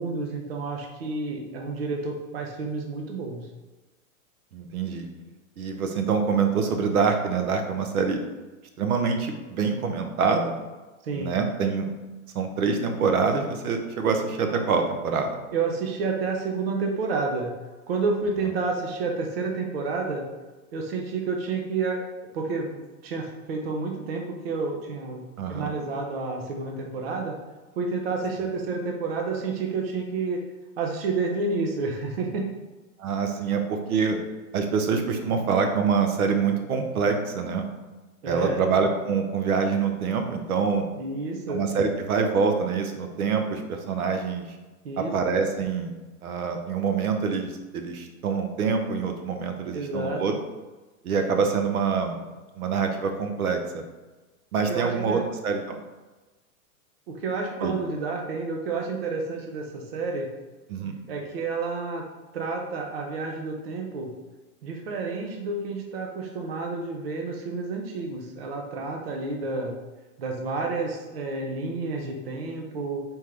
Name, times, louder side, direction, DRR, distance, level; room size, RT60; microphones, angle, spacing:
voice 1, 0.0-3.5 11.0-11.3 15.5-17.5 17.9-20.3 20.7-22.0 22.3-22.8 23.0-25.2 25.5-27.4 27.8-30.4 30.8-32.5 38.2-38.7 41.0-41.6 44.8-45.1 49.7-50.2 54.7-55.3 57.1-60.3 61.1-62.0 62.3-64.1 64.6-69.7 70.2-73.0, right 4 dB, 45° right, 1 dB, 0.6 m, -30 dB
voice 2, 4.5-5.1 5.6-8.2 8.8-10.5 11.1-11.9 12.3-15.3 25.4-25.7 33.0-34.2 34.5-37.6 38.3-40.9 41.5-44.4 45.0-45.9 46.2-50.3 51.0-52.2 52.6-53.8 54.5-55.8 57.6-57.7 60.7-60.9, right 5 dB, 75° right, 5 dB, 0.9 m, -25 dB
4.5 x 3.7 x 3.2 m, 1.2 s
supercardioid pair, 180°, 44 cm